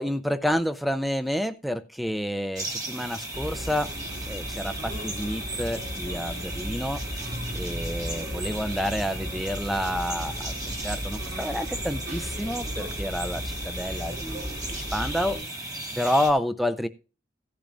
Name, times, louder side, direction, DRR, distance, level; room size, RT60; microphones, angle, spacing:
voice 1, 0.0-3.9 4.3-7.0 7.5-15.4 16.0-16.9, equal, ahead, 12 dB, 0.5 m, -29 dB
sound 1, 2.5-16.3, right 1 dB, 20° right, 2.0 m, -36 dB
sound 2, 3.3-15.4, equal, 60° right, 4.5 m, -36 dB
16.0 x 10.5 x 2.6 m, 0.34 s
head